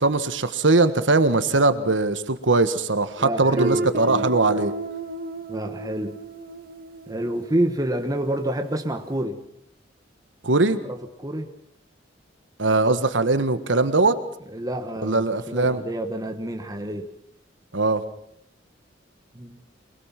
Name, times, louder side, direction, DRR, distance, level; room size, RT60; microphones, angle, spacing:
voice 1, 0.0-4.7 10.4-10.8 12.6-14.2 15.0-15.8 17.7-18.0, right 3 dB, 85° right, 11 dB, 1.6 m, -20 dB
voice 2, 3.2-4.3 4.5-4.6 5.5-6.2 7.1-9.4 10.8-11.5 14.5-17.1 19.3-19.6, right 1 dB, 20° right, 5 dB, 1.4 m, -28 dB
Guitar, 3.6-8.2, right 2 dB, 50° right, 2.2 m, -32 dB
23.5 x 22.5 x 6.0 m, 0.71 s
head